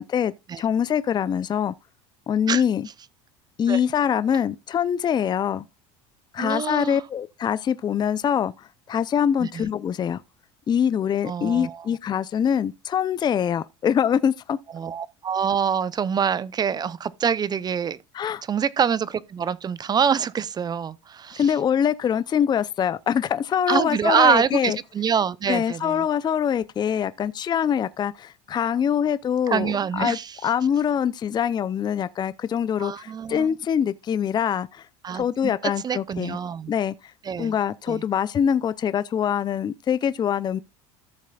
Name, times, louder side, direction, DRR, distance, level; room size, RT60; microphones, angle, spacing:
voice 1, 0.0-1.7 2.3-2.9 3.6-5.7 6.3-10.2 10.7-14.6 18.1-18.4 21.4-24.8 25.5-34.8 35.1-36.4 36.7-36.9 37.4-40.6, left 8 dB, 30° left, 0.5 m, -24 dB
voice 2, 6.4-7.0 9.4-9.7 11.3-11.9 14.7-21.5 23.7-26.1 29.5-30.5 32.8-33.5 35.0-35.5 35.8-36.7 37.2-37.5 37.9-38.0, right 7 dB, 25° right, 0.6 m, -25 dB
14.0 x 7.3 x 2.3 m
supercardioid pair, 95°, 15 cm